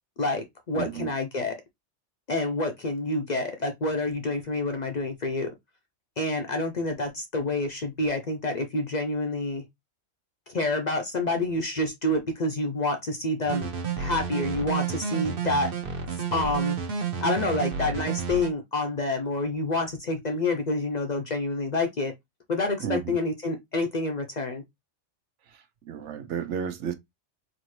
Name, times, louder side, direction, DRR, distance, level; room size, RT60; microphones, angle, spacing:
voice 1, 0.2-1.6 2.3-5.5 6.2-9.6 10.5-13.7 14.0-15.7 16.1-16.8 17.2-22.1 22.5-24.6, left 2 dB, 50° left, 0.6 m, -28 dB
voice 2, 0.7-1.1 22.8-23.2 25.9-26.9, right 8 dB, 75° right, 1.0 m, -32 dB
sound 1, 13.5-18.5, right 7 dB, 50° right, 0.9 m, -30 dB
4.2 x 2.6 x 3.0 m
omnidirectional pair, 1.2 m